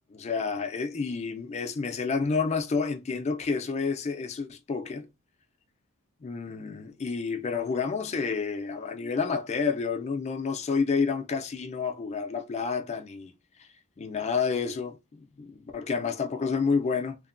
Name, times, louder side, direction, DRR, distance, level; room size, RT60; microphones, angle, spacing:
voice 1, 0.1-5.1 6.2-13.3 13.6-13.7 14.0-17.2, left 5 dB, 30° left, 0.4 m, -29 dB
2.8 x 2.1 x 2.4 m
head